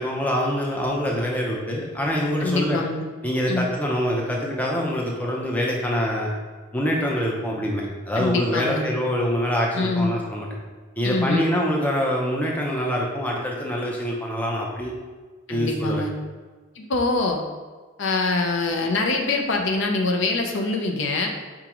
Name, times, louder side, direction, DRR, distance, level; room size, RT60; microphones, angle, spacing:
voice 1, 0.0-2.8 3.2-6.3 6.7-10.5 11.0-14.9 15.5-16.0, equal, 10° left, -2 dB, 0.5 m, -25 dB
voice 2, 2.4-3.1 3.5-3.6 8.2-8.9 9.8-10.1 11.0-11.5 15.5-16.1 16.8-17.4 18.0-21.3, left 3 dB, 60° left, 2 dB, 0.5 m, -24 dB
4.9 x 3.5 x 3.0 m, 1.4 s
head